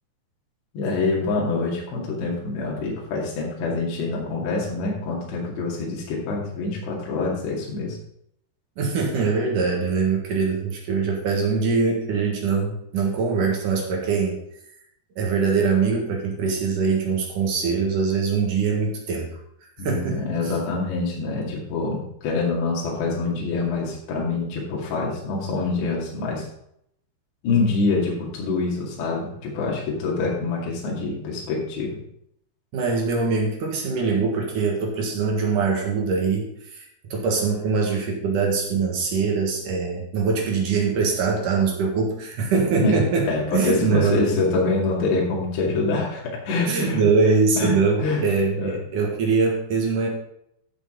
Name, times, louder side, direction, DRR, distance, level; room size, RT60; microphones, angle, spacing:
voice 1, 0.7-8.0 19.8-26.5 27.4-32.0 42.8-43.0 43.3-47.0 47.6-47.7 48.0-48.2 48.6-48.8, left 3 dB, 70° left, -3 dB, 4.5 m, -25 dB
voice 2, 8.8-14.4 15.2-19.4 19.8-20.5 32.7-44.3 46.7-50.1, right 5 dB, 60° right, 0 dB, 2.7 m, -23 dB
14.5 x 6.4 x 3.8 m, 0.74 s
omnidirectional pair, 5.2 m